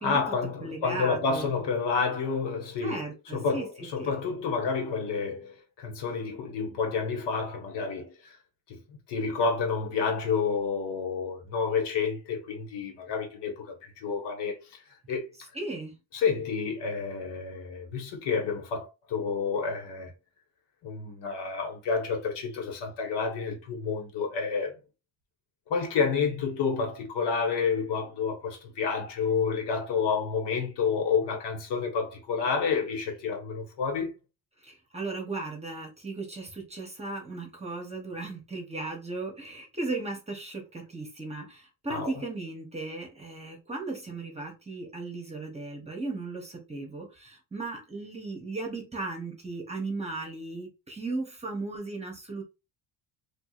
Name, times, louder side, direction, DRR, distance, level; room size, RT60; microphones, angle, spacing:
voice 1, 0.0-3.0 3.3-8.4 8.7-14.6 15.1-15.2 16.1-20.1 20.8-24.7 25.7-34.1 41.9-42.2, left 5 dB, 75° left, 1.3 m, -29 dB
voice 2, 0.6-1.6 2.8-4.1 15.5-15.9 34.6-52.4, right 3 dB, 15° right, 0.9 m, -36 dB
4.6 x 2.4 x 2.4 m
cardioid pair, 150°, 42 cm